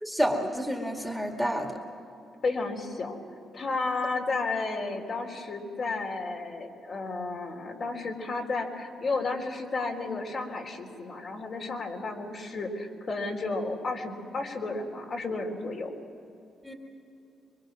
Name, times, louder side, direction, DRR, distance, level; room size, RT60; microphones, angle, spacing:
voice 1, 0.0-1.8 16.6-16.7, equal, ahead, 2 dB, 2.2 m, -29 dB
voice 2, 2.4-3.2 3.5-15.9, left 3 dB, 50° left, 1 dB, 3.6 m, -32 dB
25.0 x 23.0 x 6.3 m, 2.8 s
cardioid pair, 90°, 0 cm